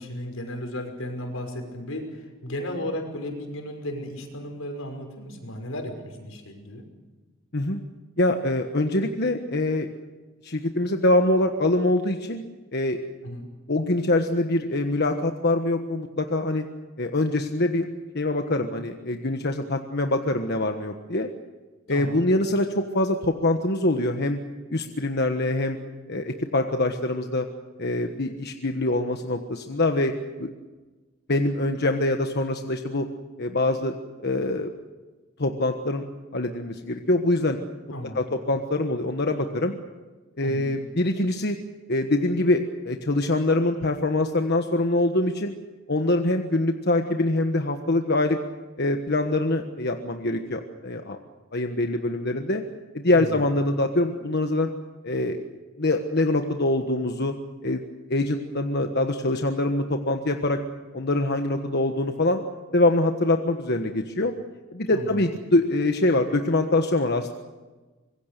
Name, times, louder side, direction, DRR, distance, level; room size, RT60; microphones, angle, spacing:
voice 1, 0.0-6.8 13.2-13.5 21.9-22.3 37.9-38.3 40.4-40.7 53.1-53.5 64.9-65.3, left 1 dB, 85° left, 4 dB, 5.7 m, -35 dB
voice 2, 8.2-9.9 10.4-12.4 12.7-13.0 13.7-16.6 17.0-17.9 18.1-21.3 21.9-24.4 24.7-25.8 26.1-27.5 27.8-30.1 30.4-30.5 31.3-33.1 33.4-33.9 34.2-34.7 35.4-36.0 36.3-37.6 38.1-39.7 40.4-41.6 41.9-45.5 45.9-48.4 48.8-51.2 51.5-52.6 52.9-54.7 55.0-55.4 55.8-57.3 57.6-57.8 58.1-60.6 60.9-62.4 62.7-64.3 64.7-67.3, left 2 dB, 50° left, 5 dB, 1.4 m, -24 dB
25.5 x 22.5 x 6.8 m, 1.2 s
head